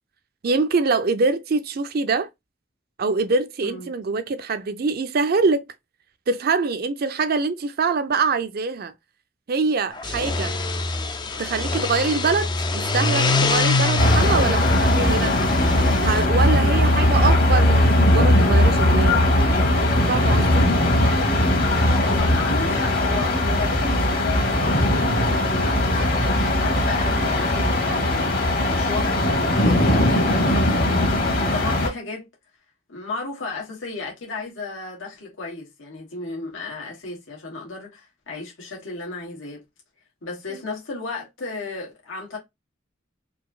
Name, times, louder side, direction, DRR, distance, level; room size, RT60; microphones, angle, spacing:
voice 1, 0.4-2.3 3.0-5.6 6.3-8.9 9.5-10.5 11.4-15.3 16.0-19.3 20.1-20.7 40.5-40.6, right 4 dB, 50° right, 0.5 m, -24 dB
sound 1, 10.0-16.2, left 3 dB, 25° left, 0.4 m, -24 dB
sound 2, 14.0-31.9, left 1 dB, 50° left, 1.2 m, -19 dB
voice 2, 16.6-17.0 21.8-32.3 32.9-39.6 40.2-42.4, left 3 dB, 85° left, 1.3 m, -34 dB
4.0 x 2.6 x 2.2 m
head